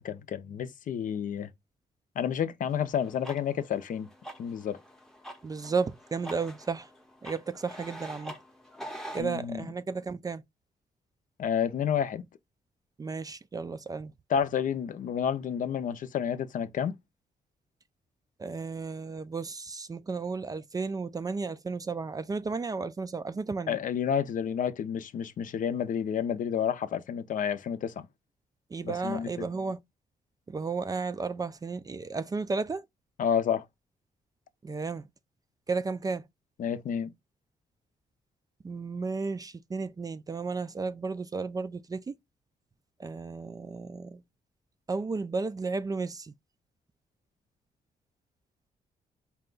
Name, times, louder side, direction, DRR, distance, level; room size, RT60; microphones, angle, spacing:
voice 1, 0.0-1.5 2.2-4.1 4.4-4.8 9.2-9.7 11.4-12.2 14.3-16.9 23.7-28.1 28.8-29.5 33.2-33.7 36.6-37.1, left 8 dB, 65° left, 0.5 m, -30 dB
sound 1, 2.7-9.2, right 1 dB, 5° left, 0.7 m, -45 dB
voice 2, 5.4-6.9 7.2-8.4 9.1-10.4 13.0-14.1 18.4-23.8 28.7-29.8 30.5-32.9 34.6-35.1 35.7-36.3 38.6-42.2 43.0-44.2 44.9-46.3, right 4 dB, 25° right, 0.3 m, -33 dB
4.2 x 2.3 x 3.7 m
cardioid pair, 90°, 15 cm